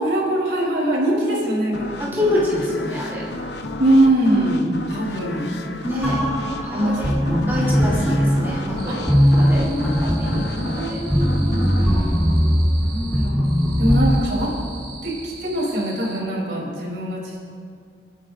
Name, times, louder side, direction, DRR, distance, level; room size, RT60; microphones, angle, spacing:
voice 1, 0.0-2.3 3.8-5.5 6.7-7.8 8.9-9.0 9.5-9.9 10.2-11.7 12.8-13.4 13.8-14.5 15.0-17.4, right 1 dB, 75° right, -3 dB, 3.3 m, -23 dB
sound 1, 1.7-13.2, left 2 dB, 75° left, 0.8 m, -33 dB
voice 2, 2.0-3.2 5.8-6.3 6.6-9.0 9.4-9.7 10.0-11.0 11.8-12.2, left 1 dB, 15° right, -7 dB, 2.7 m, -26 dB
sound 2, 6.0-14.2, equal, 5° left, 2.5 m, -20 dB
sound 3, 8.8-16.2, right 3 dB, 50° right, 2.0 m, -41 dB
28.5 x 9.9 x 2.5 m, 2.2 s
head